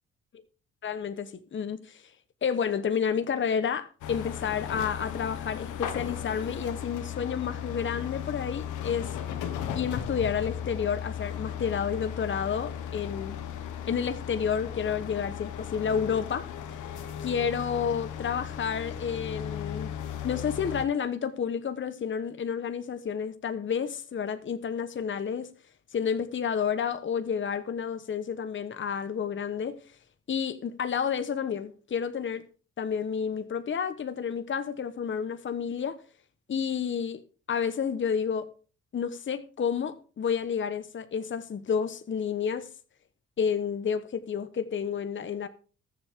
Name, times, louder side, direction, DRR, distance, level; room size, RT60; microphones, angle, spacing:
voice 1, 0.8-2.1 2.4-9.2 9.7-13.4 13.9-16.5 17.2-19.9 20.2-25.5 25.9-30.0 30.3-32.4 32.8-36.0 36.5-37.2 37.5-38.5 38.9-42.7 43.4-45.5, left 7 dB, 40° left, 1.1 m, -30 dB
sound 1, 4.0-20.9, left 9 dB, 85° left, 1.6 m, -36 dB
20.5 x 7.3 x 3.6 m
cardioid pair, 90°, 30 cm